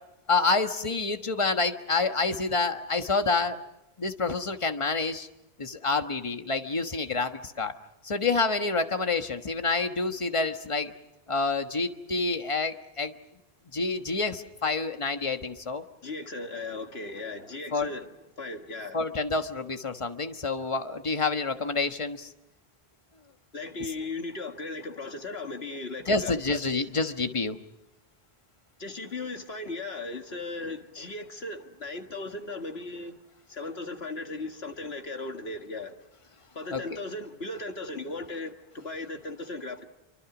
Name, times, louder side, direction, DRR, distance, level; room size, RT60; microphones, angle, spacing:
voice 1, 0.3-3.6 4.0-5.3 5.6-7.7 8.0-10.9 11.3-13.1 13.7-15.8 17.7-17.9 18.9-22.3 23.8-23.9 26.1-27.6 36.7-36.8, left 3 dB, 30° left, 1.4 m, -28 dB
voice 2, 16.0-18.1 18.4-19.0 23.5-26.6 28.8-33.2 33.5-36.0 36.6-39.9, left 3 dB, 75° left, 2.1 m, -37 dB
27.5 x 24.5 x 6.1 m
omnidirectional pair, 1.0 m